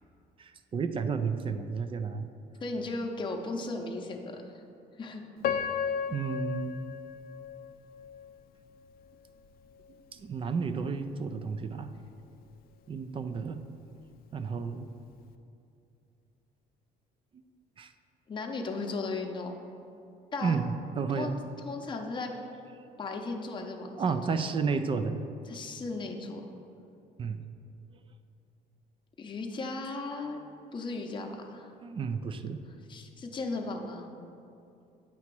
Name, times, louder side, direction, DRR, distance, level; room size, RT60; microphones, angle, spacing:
voice 1, 0.4-2.3 6.1-7.0 9.9-11.9 12.9-13.6 14.3-14.9 17.8-17.9 20.4-20.7 21.0-21.4 24.0-25.3 27.2-27.4 31.8-32.6, right 5 dB, 30° right, 10 dB, 0.3 m, -32 dB
voice 2, 2.6-4.5 5.0-5.2 18.3-19.6 20.3-20.6 21.1-21.3 21.6-22.3 23.0-24.4 25.5-26.5 29.2-30.4 30.7-31.7 32.9-34.1, left 3 dB, 30° left, 2 dB, 0.7 m, -36 dB
Piano, 5.4-8.4 9.0-9.1 9.8-10.0, left 8 dB, 60° left, 0.4 m, -34 dB
8.3 x 2.9 x 6.0 m, 2.6 s
cardioid pair, 110°, 17 cm